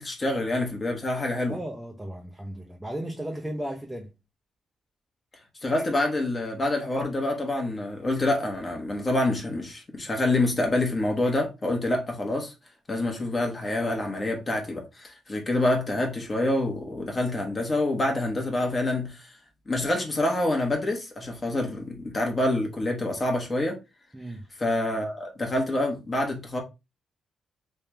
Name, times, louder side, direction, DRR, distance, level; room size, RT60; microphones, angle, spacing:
voice 1, 0.0-1.6 5.6-12.5 12.9-19.3 19.7-23.8 24.6-26.6, left 1 dB, 30° left, 1.1 m, -27 dB
voice 2, 1.5-4.1 24.1-24.5, right 1 dB, 5° right, 0.6 m, -35 dB
3.3 x 3.0 x 3.3 m
cardioid pair, 110°, 0 cm